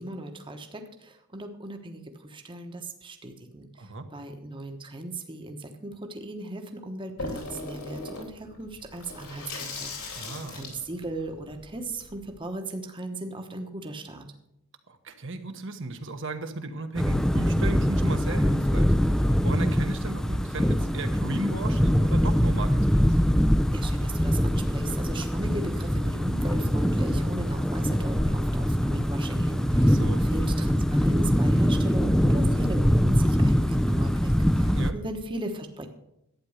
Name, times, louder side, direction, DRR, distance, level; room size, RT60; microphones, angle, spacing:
voice 1, 0.0-10.2 10.5-14.2 23.7-35.9, right 2 dB, 25° right, 5 dB, 1.1 m, -37 dB
Water tap faucet / Sink (filling or washing), 7.2-12.4, left 3 dB, 90° left, 3.6 m, -39 dB
voice 2, 10.2-10.6 14.9-18.9 19.4-23.1 29.8-30.2 34.7-34.9, right 2 dB, 60° right, 6 dB, 1.2 m, -35 dB
sound 1, 17.0-34.9, equal, 5° left, 0.5 m, -23 dB
11.5 x 9.1 x 6.5 m, 0.81 s
head